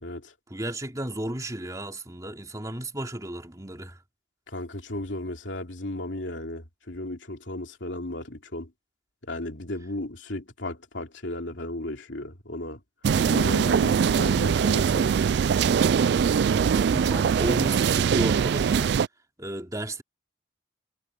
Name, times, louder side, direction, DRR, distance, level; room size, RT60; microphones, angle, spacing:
voice 1, 0.5-4.0 16.5-19.0 19.4-20.0, right 1 dB, 20° right, 2.9 m, -33 dB
voice 2, 4.5-8.7 9.3-12.8 13.3-15.2, left 1 dB, 75° left, 3.0 m, -35 dB
sound 1, 13.0-19.1, right 7 dB, 60° right, 0.3 m, -22 dB
head